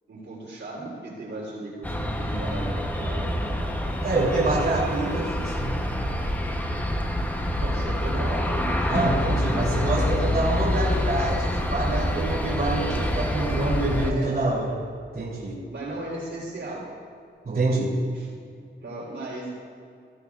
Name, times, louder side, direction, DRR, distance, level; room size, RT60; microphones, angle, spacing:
voice 1, 0.1-3.7 4.4-4.8 7.6-9.0 9.4-9.7 14.0-14.3 15.7-16.9 18.1-18.3 18.8-19.5, right 2 dB, 75° right, -4 dB, 3.5 m, -36 dB
Aircraft, 1.8-14.1, equal, 10° left, 0.8 m, -27 dB
voice 2, 4.0-5.8 8.9-14.7 15.1-15.6 17.4-18.0, right 2 dB, 50° right, -7 dB, 3.1 m, -26 dB
sound 1, 9.0-14.9, left 2 dB, 35° left, 1.2 m, -30 dB
17.5 x 14.5 x 2.4 m, 2.4 s
wide cardioid pair, 155°, 19 cm